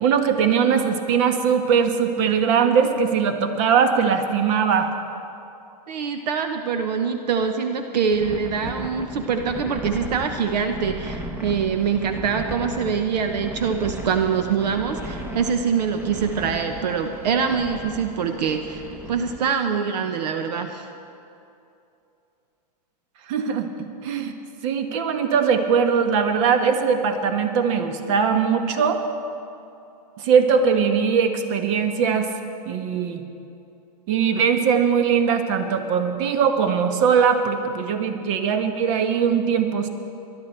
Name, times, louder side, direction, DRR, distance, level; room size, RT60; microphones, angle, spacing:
voice 1, 0.0-4.9 23.3-23.7 24.0-24.3 24.6-29.0 30.2-32.3 32.6-33.2 34.1-39.9, right 6 dB, 50° right, 7 dB, 1.3 m, -20 dB
voice 2, 5.9-18.8 19.1-20.9, right 6 dB, 75° right, 6 dB, 0.9 m, -24 dB
sound 1, 8.1-19.5, right 1 dB, 10° right, 0.9 m, -35 dB
20.0 x 11.5 x 4.5 m, 2.7 s
hypercardioid pair, 135°, 21 cm